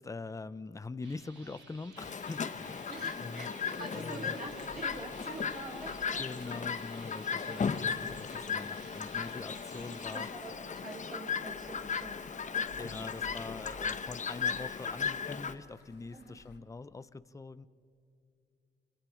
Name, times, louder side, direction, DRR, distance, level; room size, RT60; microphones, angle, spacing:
voice 1, 0.0-2.9 3.2-3.5 3.9-4.3 6.2-10.6 12.8-17.7, left 3 dB, 15° left, 15 dB, 0.7 m, -43 dB
sound 1, 1.0-10.3, right 4 dB, 65° right, 6.3 m, -56 dB
Chirp tweet, 2.0-15.5, left 6 dB, 35° left, 1.1 m, -36 dB
voice 2, 2.9-6.2 7.0-7.7 9.9-13.3 14.0-14.1 16.1-16.4, right 2 dB, 45° right, -2 dB, 4.2 m, -46 dB
sound 2, 4.4-16.6, left 3 dB, 55° left, 2.3 m, -58 dB
29.0 x 25.0 x 5.1 m, 2.5 s
cardioid pair, 90°, 21 cm